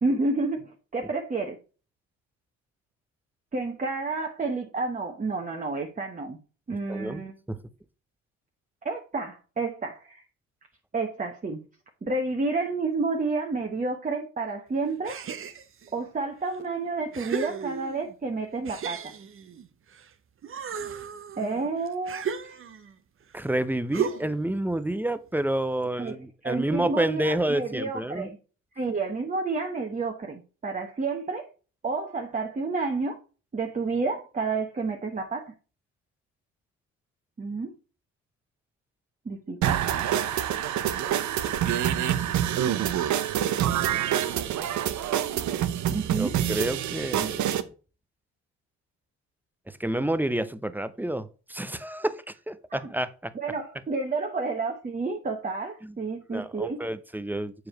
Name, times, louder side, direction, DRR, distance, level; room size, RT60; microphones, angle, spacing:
voice 1, 0.0-1.6 3.5-6.4 6.7-7.3 8.8-10.2 10.9-11.6 12.0-15.2 15.9-19.1 21.4-22.6 26.0-26.1 26.4-28.4 28.7-31.5 31.8-33.2 33.5-35.5 37.4-37.7 39.2-39.8 45.9-46.3 52.7-52.9 53.3-56.8, right 3 dB, 25° right, 2 dB, 1.1 m, -30 dB
voice 2, 6.9-7.2 7.5-7.6 23.3-28.3 40.0-40.6 43.7-44.0 44.6-44.7 46.1-47.5 49.7-53.3 55.8-55.9 56.3-57.7, right 1 dB, 5° right, 13 dB, 0.6 m, -29 dB
sound 1, 15.0-15.9 16.5-16.6 17.1-18.1 18.7-20.1 20.4-23.0 23.9-24.5, right 7 dB, 45° right, 0.8 m, -34 dB
sound 2, 39.6-47.6, right 10 dB, 70° right, 0.8 m, -26 dB
7.1 x 4.9 x 4.5 m, 0.35 s
cardioid pair, 90°, 30 cm